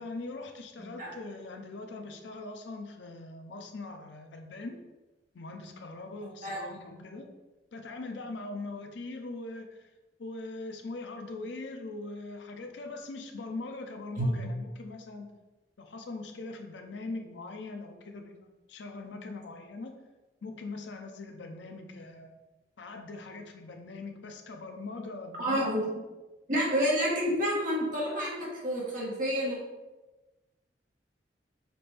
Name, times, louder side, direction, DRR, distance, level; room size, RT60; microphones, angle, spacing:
voice 1, 0.0-4.8 5.3-7.3 7.7-9.8 10.2-15.3 15.8-19.9 20.4-22.4 22.8-25.9, left 3 dB, 80° left, 5 dB, 0.5 m, -41 dB
voice 2, 0.8-1.1 6.4-6.6 14.2-14.3 25.4-25.8 26.5-29.6, equal, 50° right, -4 dB, 1.4 m, -29 dB
5.9 x 2.5 x 3.3 m, 1.1 s
head